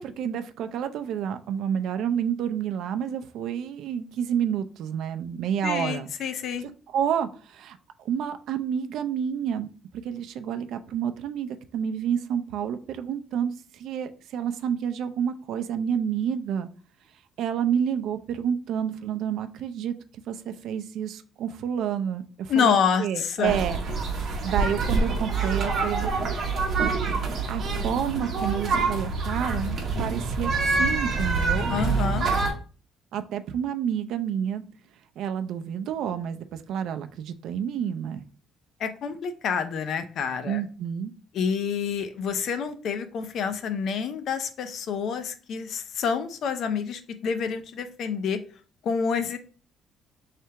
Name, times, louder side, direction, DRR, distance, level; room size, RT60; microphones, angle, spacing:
voice 1, 0.0-6.1 6.6-9.7 10.0-16.7 17.4-20.0 20.3-23.8 24.2-26.1 26.8-27.1 27.5-31.7 33.1-34.6 35.2-38.2 40.4-41.1, right 8 dB, 65° right, 8 dB, 0.4 m, -29 dB
voice 2, 5.6-6.7 22.5-23.6 31.7-32.3 38.8-40.6 41.3-48.4 48.8-49.4, left 6 dB, 55° left, 9 dB, 0.5 m, -28 dB
sound 1, 23.4-32.5, right 3 dB, 40° right, 1.0 m, -26 dB
3.3 x 2.8 x 4.4 m, 0.39 s
cardioid pair, 155°, 0 cm